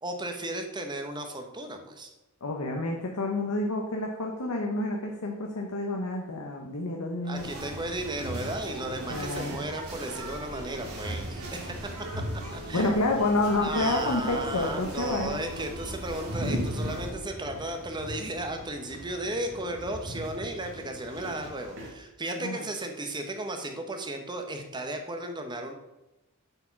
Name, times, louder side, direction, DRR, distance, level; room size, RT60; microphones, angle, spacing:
voice 1, 0.0-2.1 7.2-11.8 12.5-13.0 13.6-25.7, right 1 dB, 20° right, 5 dB, 1.0 m, -35 dB
voice 2, 2.4-7.5 9.1-9.6 12.7-15.4 22.4-22.6, left 2 dB, 80° left, 1 dB, 1.0 m, -29 dB
sound 1, 7.3-17.1, right 1 dB, 75° right, 2.3 m, -38 dB
sound 2, 13.8-21.9, equal, 55° right, 1.8 m, -39 dB
8.0 x 4.8 x 5.8 m, 0.98 s
head